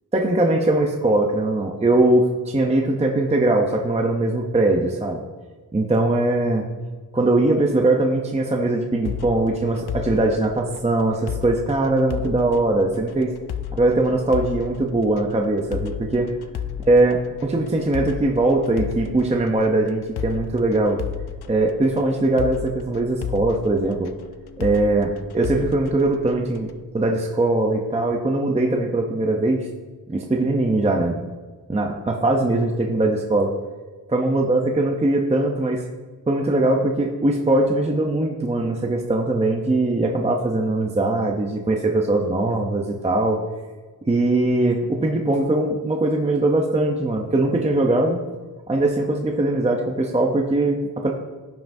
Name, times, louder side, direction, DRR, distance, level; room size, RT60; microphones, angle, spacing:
voice 1, 0.1-5.2 5.7-6.6 7.1-13.3 13.7-16.3 16.8-21.0 21.4-24.1 24.6-26.7 26.9-29.7 30.1-31.2 31.7-33.5 34.1-35.8 36.3-43.4 44.0-48.2 48.7-51.1, right 2 dB, 15° right, 1 dB, 0.6 m, -21 dB
sound 1, 9.0-26.8, left 9 dB, 80° left, 0.5 m, -34 dB
15.5 x 5.7 x 2.6 m, 1.4 s
wide cardioid pair, 155°, 38 cm